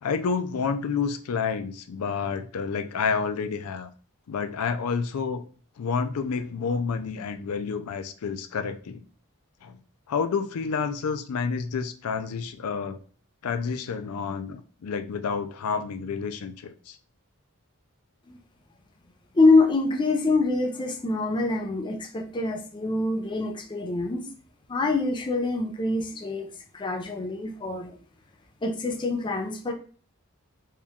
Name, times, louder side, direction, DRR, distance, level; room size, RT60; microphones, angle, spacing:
voice 1, 0.0-3.9 4.3-5.4 5.8-9.0 9.6-9.8 10.1-13.0 13.4-17.0, left 5 dB, 85° left, 8 dB, 0.4 m, -29 dB
voice 2, 19.4-24.3 24.7-26.5 26.7-27.9 28.6-29.7, left 3 dB, 20° left, 2 dB, 0.4 m, -25 dB
4.3 x 2.3 x 3.5 m, 0.42 s
head